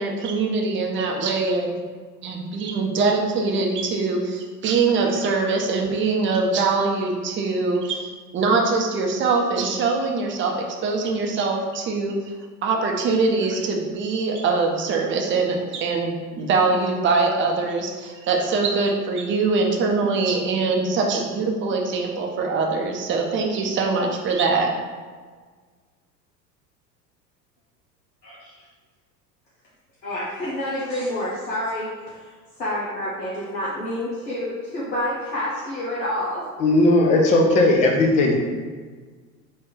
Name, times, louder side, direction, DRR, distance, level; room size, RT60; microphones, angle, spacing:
voice 1, 0.0-1.8 2.2-8.1 8.3-10.5 10.8-12.2 12.6-24.7, right 4 dB, 25° right, 1 dB, 0.6 m, -23 dB
voice 2, 30.0-32.3 32.6-36.5, left 1 dB, 85° left, -8 dB, 0.9 m, -28 dB
voice 3, 36.6-38.4, left 2 dB, 20° left, 1 dB, 0.3 m, -17 dB
4.1 x 2.5 x 3.8 m, 1.5 s
figure-of-eight pair, 75°, 50 cm